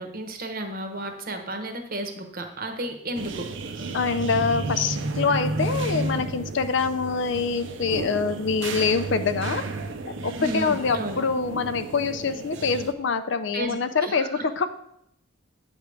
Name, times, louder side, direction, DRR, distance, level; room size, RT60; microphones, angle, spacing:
voice 1, 0.0-3.5 10.4-11.2 13.5-14.5, right 1 dB, 45° right, 4 dB, 1.0 m, -33 dB
sound 1, 3.1-12.9, right 2 dB, 60° right, 0.6 m, -32 dB
voice 2, 3.9-9.7 10.1-14.7, left 5 dB, 55° left, 10 dB, 0.4 m, -25 dB
8.9 x 3.5 x 6.3 m, 0.77 s
head